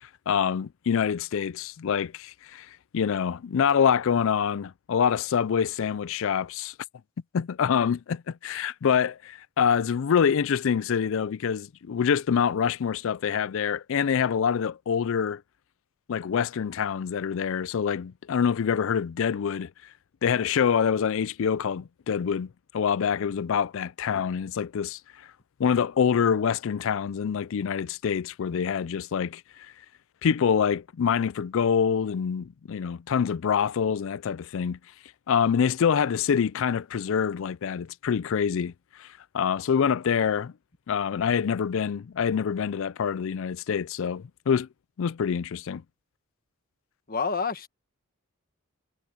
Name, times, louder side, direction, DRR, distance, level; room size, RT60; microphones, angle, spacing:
voice 1, 0.3-2.7 2.9-6.7 7.3-15.4 16.1-19.7 20.2-25.0 25.6-29.4 30.2-34.8 35.3-38.7 39.0-39.1 39.3-40.5 40.9-44.7 45.0-45.8, left 7 dB, 60° left, 0.4 m, -26 dB
voice 2, 47.1-47.7, left 5 dB, 40° left, 1.7 m, -28 dB
head